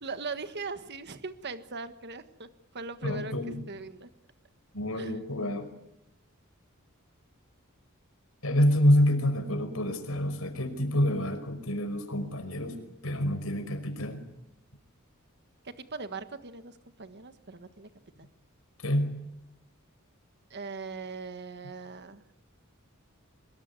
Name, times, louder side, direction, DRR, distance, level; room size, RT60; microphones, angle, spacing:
voice 1, 0.0-2.5 2.7-4.1 4.9-5.2 15.6-17.9 18.2-18.3 20.5-22.2, right 4 dB, 50° right, 10 dB, 1.5 m, -40 dB
voice 2, 3.0-3.6 4.7-5.7 8.4-12.8 13.0-14.2 18.8-19.1, equal, 75° left, 7 dB, 5.4 m, -27 dB
25.0 x 21.5 x 9.7 m, 0.88 s
head